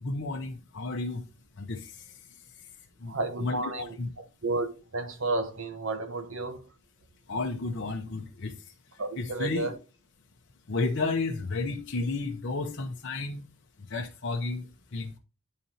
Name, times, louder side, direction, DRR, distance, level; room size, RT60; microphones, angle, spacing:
voice 1, 0.0-1.2 1.6-2.0 3.0-3.1 3.4-3.6 4.0-4.1 7.3-8.6 9.2-9.7 10.7-13.4 13.9-15.2, left 3 dB, 55° left, 0.8 m, -32 dB
voice 2, 3.1-6.7 9.0-9.8, right 2 dB, 65° right, 1.0 m, -32 dB
10.5 x 4.1 x 2.8 m
head